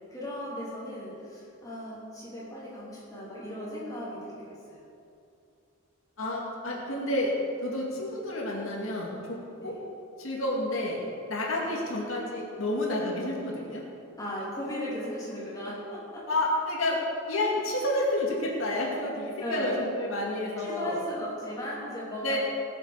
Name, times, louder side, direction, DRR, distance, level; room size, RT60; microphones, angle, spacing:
voice 1, 0.1-4.8 9.6-9.7 11.6-11.7 14.2-16.3 19.4-19.8 20.6-22.4, left 1 dB, 15° left, -6 dB, 2.9 m, -36 dB
voice 2, 6.2-7.4 7.6-9.8 10.2-11.0 11.3-13.9 16.3-21.0 22.2-22.4, left 1 dB, 75° left, -3 dB, 2.2 m, -30 dB
19.0 x 7.8 x 4.9 m, 2.6 s
head